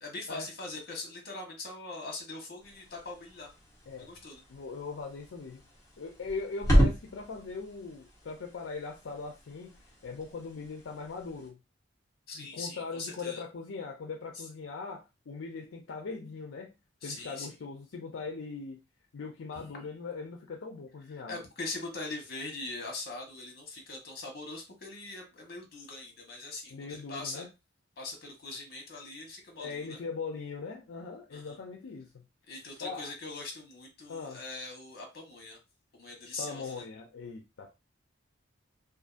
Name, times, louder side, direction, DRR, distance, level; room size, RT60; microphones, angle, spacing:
voice 1, 0.0-3.5 4.0-4.4 12.3-13.4 14.3-14.5 17.0-17.5 19.5-19.7 21.1-27.5 28.0-30.0 31.3-31.6 32.5-35.6 35.9-36.8, left 3 dB, 55° left, 1.0 m, -42 dB
sound 1, 2.6-11.5, equal, 15° left, 0.9 m, -33 dB
voice 2, 4.5-5.6 6.0-11.6 12.3-16.7 17.0-18.8 19.1-21.3 26.7-27.5 29.6-32.2 32.8-33.1 34.1-34.4 36.4-37.8, left 4 dB, 75° left, 0.5 m, -40 dB
2.6 x 2.4 x 2.4 m
head